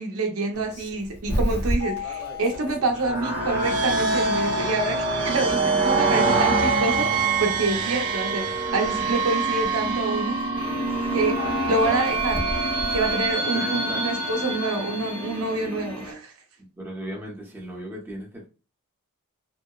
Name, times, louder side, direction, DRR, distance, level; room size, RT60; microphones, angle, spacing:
voice 1, 0.0-10.4 11.1-11.4 11.7-12.5 12.9-16.3, right 2 dB, 65° right, 0.7 m, -27 dB
Doorbell, 0.5-13.3, left 2 dB, 50° left, 0.9 m, -34 dB
sound 1, 2.9-15.5, right 3 dB, 35° right, 1.0 m, -25 dB
sound 2, 10.5-16.1, left 2 dB, 25° left, 0.8 m, -35 dB
voice 2, 13.5-14.1 16.8-18.5, equal, 10° right, 0.7 m, -36 dB
2.8 x 2.0 x 2.2 m
head